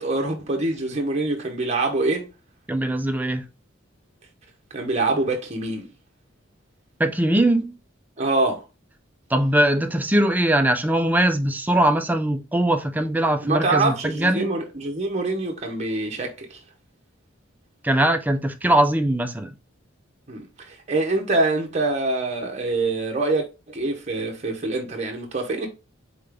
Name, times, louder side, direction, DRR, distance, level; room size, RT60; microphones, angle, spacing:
voice 1, 0.0-2.3 4.7-5.9 8.2-8.6 13.4-16.6 20.3-25.7, right 2 dB, 35° right, 0.8 m, -25 dB
voice 2, 2.7-3.4 7.0-7.7 9.3-14.5 17.8-19.5, right 1 dB, 10° right, 0.5 m, -21 dB
3.8 x 3.6 x 3.4 m
head